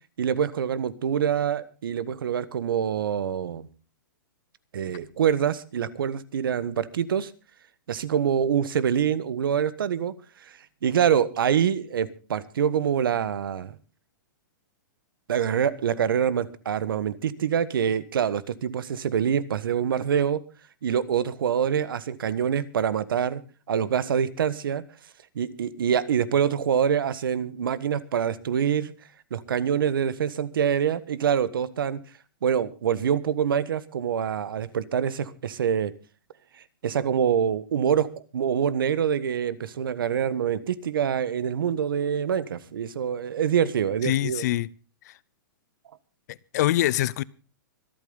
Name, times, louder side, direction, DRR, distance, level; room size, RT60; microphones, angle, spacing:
voice 1, 0.2-3.7 4.7-7.3 7.9-10.1 10.4-13.8 15.3-20.4 20.8-23.4 23.7-24.8 25.3-28.9 29.3-32.0 32.4-35.9 36.8-44.4, right 8 dB, 80° right, 1.4 m, -25 dB
voice 2, 44.0-44.7 46.5-47.2, left 14 dB, 50° left, 0.6 m, -23 dB
25.5 x 9.0 x 3.9 m
hypercardioid pair, 150°, 11 cm